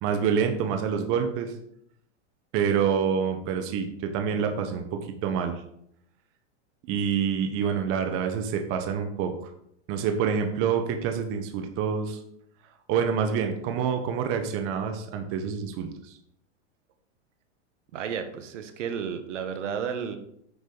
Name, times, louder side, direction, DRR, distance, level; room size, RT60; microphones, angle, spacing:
voice 1, 0.0-1.5 2.5-5.6 6.9-9.3 9.9-12.2 12.9-16.1, right 7 dB, 35° right, 6 dB, 1.3 m, -27 dB
voice 2, 17.9-20.2, right 7 dB, 80° right, 8 dB, 1.4 m, -32 dB
9.4 x 6.5 x 4.0 m, 0.71 s
supercardioid pair, 145°, 36 cm